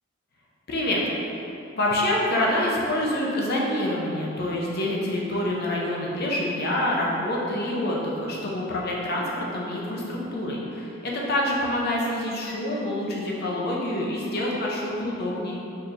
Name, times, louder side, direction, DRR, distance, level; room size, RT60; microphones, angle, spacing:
voice 1, 0.7-1.0 1.7-15.6, left 1 dB, 50° left, -3 dB, 0.6 m, -26 dB
4.4 x 3.1 x 2.5 m, 2.9 s
head